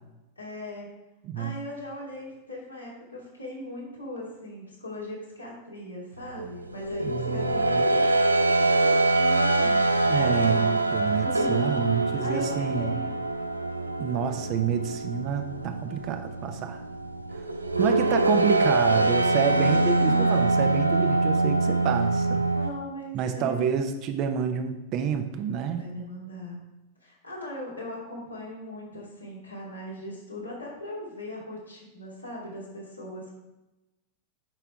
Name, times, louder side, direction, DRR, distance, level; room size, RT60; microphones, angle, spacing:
voice 1, 0.4-0.9 1.3-8.1 8.3-10.4 11.1-13.1 17.7-20.5 22.4-23.7 25.8-26.6 27.0-33.4, left 1 dB, 85° left, -5 dB, 2.8 m, -40 dB
sound 1, 6.3-22.7, right 2 dB, 80° right, 0.5 m, -24 dB
voice 2, 7.0-7.9 10.0-13.0 14.0-16.8 17.8-22.5 23.1-25.9, right 8 dB, 40° right, 7 dB, 0.8 m, -28 dB
9.0 x 5.9 x 3.6 m, 1.0 s
figure-of-eight pair, 90°, 0 cm